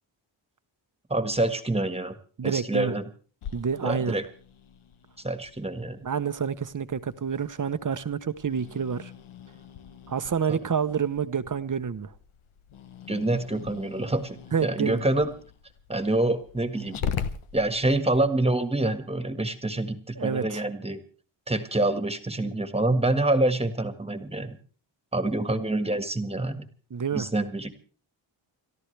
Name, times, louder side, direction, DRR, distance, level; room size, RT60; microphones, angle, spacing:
voice 1, 1.1-2.2 2.4-3.0 3.8-4.3 5.2-6.0 10.5-10.6 13.1-15.3 15.9-17.1 17.5-21.0 21.5-24.6 25.1-26.6 27.1-27.7, right 2 dB, 10° right, 1.6 m, -26 dB
voice 2, 2.4-3.0 3.5-4.1 6.0-9.1 10.1-12.1 14.5-15.0 20.2-20.6 26.9-27.3, right 7 dB, 40° right, 0.9 m, -28 dB
Growling, 3.4-18.2, left 7 dB, 90° left, 1.2 m, -41 dB
30.0 x 13.5 x 3.4 m
wide cardioid pair, 110°, 48 cm